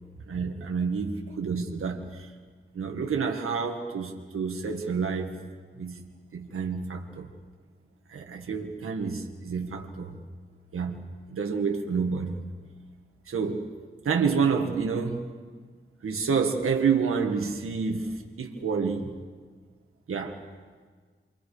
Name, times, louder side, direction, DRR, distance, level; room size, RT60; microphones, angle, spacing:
voice 1, 0.3-2.3 2.7-5.3 5.8-6.0 6.3-7.3 8.1-10.2 10.7-11.0 11.3-12.4 13.3-13.7 14.0-15.3 16.0-18.1 18.4-19.1 20.1-20.4, right 5 dB, 85° right, 2 dB, 1.8 m, -28 dB
28.5 x 24.0 x 5.0 m, 1.5 s
cardioid pair, 65°, 21 cm